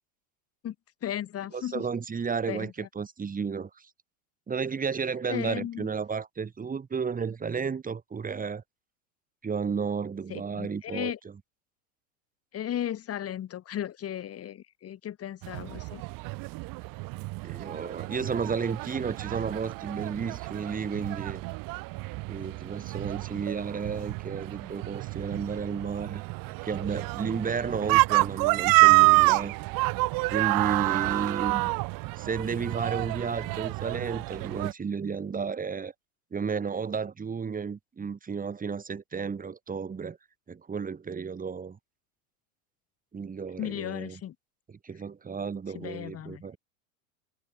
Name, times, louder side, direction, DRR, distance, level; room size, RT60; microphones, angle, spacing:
voice 1, 1.0-1.9 2.5-2.9 5.3-5.9 10.3-11.2 12.5-16.0 43.6-44.3 45.7-46.6, left 11 dB, 35° left, 4.7 m, -35 dB
voice 2, 1.5-3.9 4.5-8.6 9.4-11.1 17.4-21.4 22.3-26.2 26.6-29.5 30.3-31.7 32.2-35.9 36.3-40.2 40.5-41.8 43.1-44.2 44.8-46.6, right 5 dB, 20° right, 4.3 m, -32 dB
sound 1, 15.4-34.7, right 25 dB, 50° right, 3.9 m, -28 dB
hypercardioid pair, 100°, 42 cm